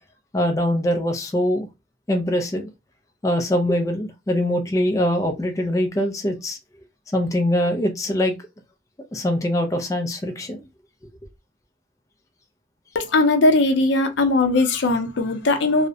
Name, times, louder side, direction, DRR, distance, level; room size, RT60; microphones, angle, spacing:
voice 1, 0.3-1.7 2.1-2.7 3.2-6.6 7.1-8.3 9.1-10.6, left 1 dB, 15° left, 0.3 m, -23 dB
voice 2, 12.9-15.9, left 2 dB, 80° left, 0.5 m, -19 dB
2.3 x 2.0 x 2.6 m
head